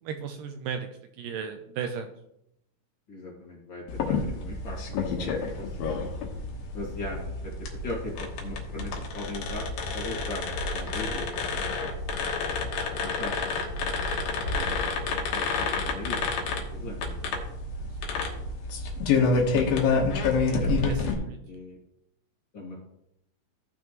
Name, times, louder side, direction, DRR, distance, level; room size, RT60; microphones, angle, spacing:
voice 1, 0.0-0.9 1.2-2.1 11.0-11.2 17.1-17.3 18.1-18.2 20.9-21.4, right 7 dB, 80° right, 6 dB, 2.1 m, -36 dB
voice 2, 3.1-5.3 5.6-6.0 6.7-7.5 7.8-9.6 9.9-11.6 12.9-14.0 14.4-17.2 20.4-20.7 21.5-21.8 22.5-22.8, left 2 dB, 35° left, -4 dB, 2.4 m, -40 dB
sound 1, 3.9-21.1, left 4 dB, 75° left, 2.9 m, -29 dB
15.5 x 6.0 x 3.0 m, 0.78 s
omnidirectional pair, 4.2 m